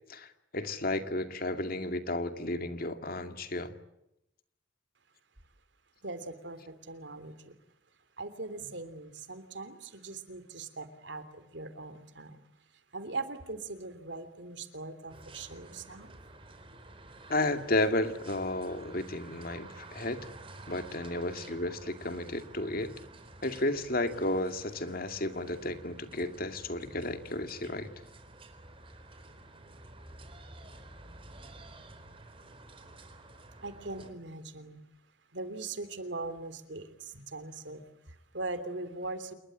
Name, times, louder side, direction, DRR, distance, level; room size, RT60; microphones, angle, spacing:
voice 1, 0.1-3.7 17.3-20.3 20.7-22.9 23.4-27.9, left 2 dB, 50° left, 8 dB, 2.4 m, -33 dB
voice 2, 6.0-7.6 8.2-12.5 12.9-16.1 33.6-34.9 35.3-39.3, right 3 dB, 65° right, 12 dB, 3.2 m, -41 dB
sound 1, 15.1-34.1, right 2 dB, 30° right, 4.2 m, -51 dB
28.5 x 22.0 x 8.9 m, 0.86 s
head